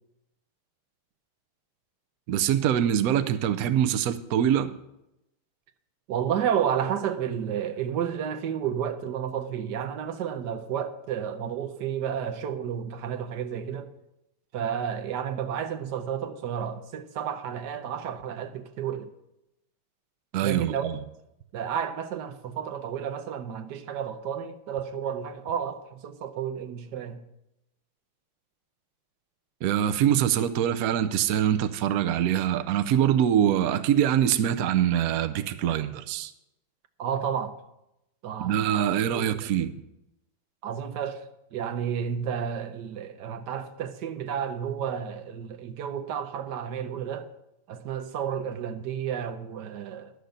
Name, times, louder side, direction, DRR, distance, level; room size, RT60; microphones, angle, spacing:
voice 1, 2.3-4.7 20.3-21.0 29.6-36.3 38.4-39.7, right 10 dB, 85° right, 0.8 m, -24 dB
voice 2, 6.1-13.9 14.5-19.1 20.4-20.9 21.5-27.2 37.0-37.6 38.2-39.5 40.6-47.3 47.7-50.1, right 8 dB, 65° right, 1.2 m, -31 dB
11.5 x 6.6 x 8.0 m
omnidirectional pair, 2.3 m